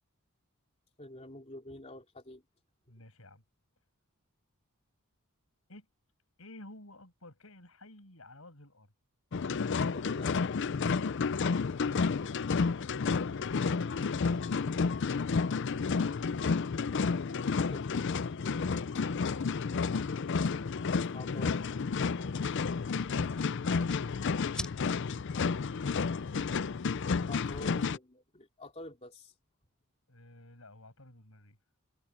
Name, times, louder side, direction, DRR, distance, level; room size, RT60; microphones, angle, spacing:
voice 1, 1.0-2.4 9.8-10.6 17.7-18.8 21.1-21.7 27.3-29.3, left 1 dB, 30° left, 3.3 m, -47 dB
voice 2, 2.9-3.4 5.7-5.9 6.4-8.9 12.1-12.5 15.1-16.4 19.0-19.6 20.0-20.8 21.8-22.5 23.6-25.4 30.1-31.6, left 1 dB, 70° left, 7.0 m, -53 dB
sound 1, 9.3-28.0, left 5 dB, 55° left, 0.5 m, -31 dB
sound 2, 20.9-27.7, left 1 dB, 5° left, 6.7 m, -50 dB
head